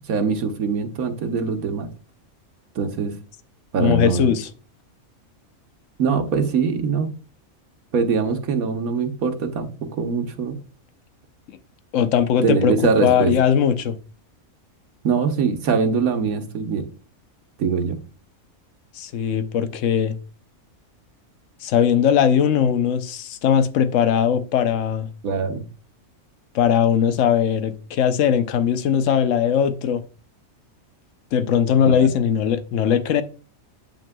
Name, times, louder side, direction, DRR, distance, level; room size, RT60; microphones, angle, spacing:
voice 1, 0.1-1.9 2.8-3.2 3.7-4.3 6.0-7.1 7.9-10.6 12.4-13.3 15.0-16.9 17.6-18.0 25.2-25.6 31.9-32.1, right 5 dB, 80° right, 1.4 m, -22 dB
voice 2, 3.8-4.5 11.5-11.6 11.9-12.7 13.0-14.0 18.9-20.2 21.6-25.1 26.5-30.0 31.3-33.2, left 8 dB, 65° left, 1.0 m, -19 dB
8.6 x 6.0 x 2.2 m
omnidirectional pair, 1.5 m